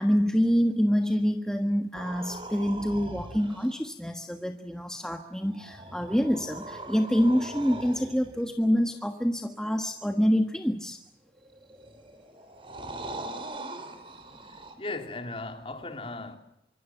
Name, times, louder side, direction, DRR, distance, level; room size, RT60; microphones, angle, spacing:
voice 1, 0.0-11.0, equal, 5° left, 1.4 m, -26 dB
sound 1, 1.9-3.7 5.3-8.5 11.4-14.7, right 2 dB, 30° right, 3.9 m, -41 dB
voice 2, 14.4-16.4, left 2 dB, 30° left, 3.1 m, -37 dB
26.0 x 24.0 x 7.3 m
head